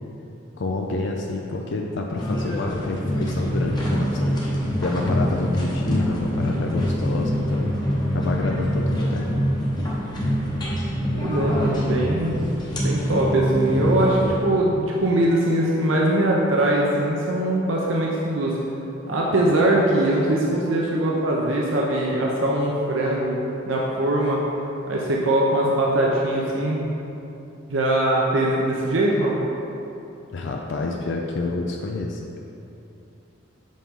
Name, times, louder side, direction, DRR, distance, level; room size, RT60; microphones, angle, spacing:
voice 1, 0.6-7.8 8.1-9.4 30.3-32.5, left 3 dB, 60° left, 1 dB, 0.4 m, -28 dB
sound 1, 2.2-14.4, equal, 20° left, 0.9 m, -25 dB
voice 2, 11.1-18.6 19.1-23.4 23.7-24.4 24.9-26.8 27.7-29.4, right 1 dB, 70° right, -3 dB, 0.7 m, -22 dB
7.3 x 5.4 x 3.7 m, 2.9 s
head